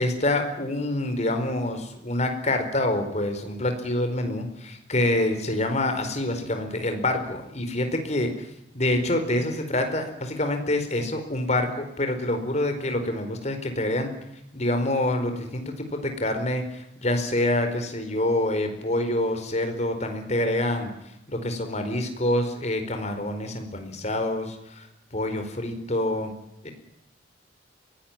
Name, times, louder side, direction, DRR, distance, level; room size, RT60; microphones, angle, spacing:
voice 1, 0.0-8.5 8.7-14.1 14.5-20.9 21.3-26.3 26.6-26.7, left 1 dB, 40° left, 6 dB, 4.6 m, -26 dB
23.0 x 17.5 x 9.1 m, 0.83 s
head